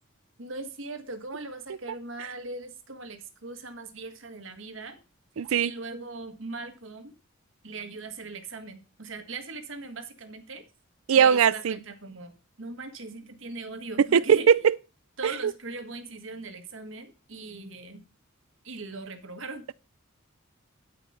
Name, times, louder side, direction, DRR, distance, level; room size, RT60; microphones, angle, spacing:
voice 1, 0.4-5.0 5.3-7.1 7.6-10.6 11.1-14.5 15.2-18.0 18.6-19.7, right 3 dB, 65° right, 1.6 m, -40 dB
voice 2, 5.4-5.7 11.1-11.7 14.1-14.7, right 7 dB, 80° right, 0.4 m, -19 dB
12.0 x 5.1 x 5.7 m
head